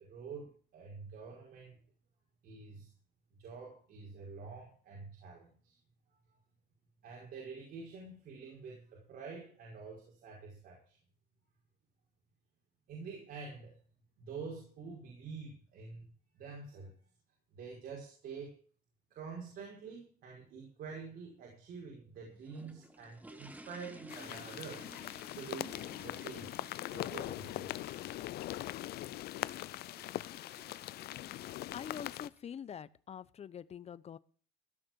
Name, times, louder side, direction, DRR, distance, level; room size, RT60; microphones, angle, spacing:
voice 1, 0.0-1.8 2.4-2.9 3.4-5.8 7.0-11.0 12.9-13.7 14.2-16.1 16.3-16.9 17.5-18.6 19.1-24.9 25.3-25.7 26.0-26.5 26.9-27.9, right 5 dB, 65° right, -1 dB, 5.3 m, -47 dB
sound 1, 22.1-32.5, right 1 dB, 10° right, 1.9 m, -56 dB
sound 2, 24.1-32.3, left 15 dB, 70° left, 0.6 m, -41 dB
voice 2, 31.7-34.2, left 8 dB, 40° left, 17 dB, 0.8 m, -45 dB
16.0 x 6.6 x 7.5 m, 0.43 s
cardioid pair, 110°, 17 cm